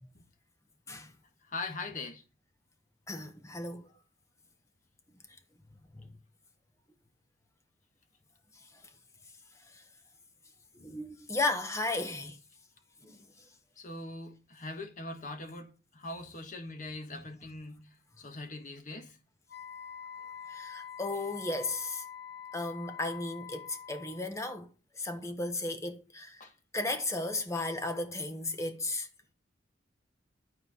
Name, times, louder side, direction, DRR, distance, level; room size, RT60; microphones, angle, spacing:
voice 1, 1.4-2.2 12.1-12.3 13.8-19.2 26.4-26.5, left 2 dB, 45° left, 1.5 m, -42 dB
voice 2, 3.1-3.9 5.9-6.2 9.7-9.8 10.7-12.4 13.0-13.2 17.1-17.2 20.5-22.0 22.5-26.5 26.7-29.1, left 2 dB, 15° left, 1.2 m, -35 dB
Wind instrument woodwind instrument, 19.5-24.3, left 8 dB, 80° left, 3.1 m, -45 dB
12.0 x 4.4 x 5.6 m
head